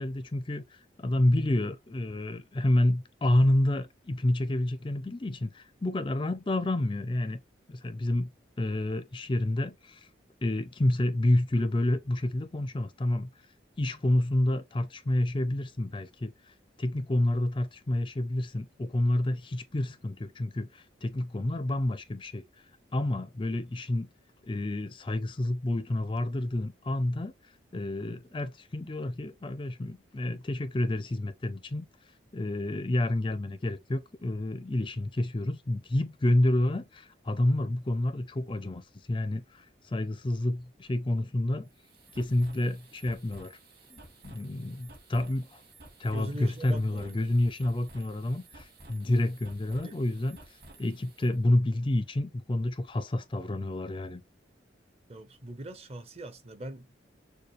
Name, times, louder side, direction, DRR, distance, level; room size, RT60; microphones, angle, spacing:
voice 1, 0.0-7.4 7.7-8.3 8.6-10.1 10.4-13.3 13.8-16.3 16.8-22.4 22.9-24.1 24.5-27.3 27.7-31.9 32.3-38.8 39.1-41.7 42.1-43.6 43.9-45.5 46.0-50.4 50.8-54.2, left 1 dB, 25° left, 0.4 m, -29 dB
sound 1, 41.6-51.4, right 2 dB, 50° right, 2.3 m, -54 dB
voice 2, 46.1-47.4 49.8-50.0 55.1-57.0, right 1 dB, 30° right, 0.7 m, -41 dB
6.7 x 2.2 x 3.1 m
head